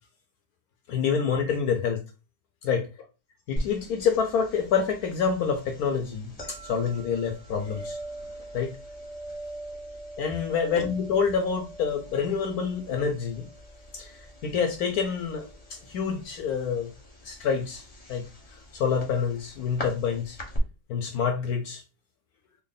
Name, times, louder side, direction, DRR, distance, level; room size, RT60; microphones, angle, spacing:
voice 1, 0.9-2.0 2.6-2.9 3.5-8.0 8.5-8.7 10.2-13.5 13.9-16.9 17.2-17.8 18.1-18.2 18.5-20.4 20.9-21.8, left 6 dB, 70° left, 5 dB, 0.9 m, -27 dB
sound 1, 3.6-20.6, equal, 30° left, 0.7 m, -42 dB
3.5 x 2.1 x 3.8 m, 0.31 s
omnidirectional pair, 1.9 m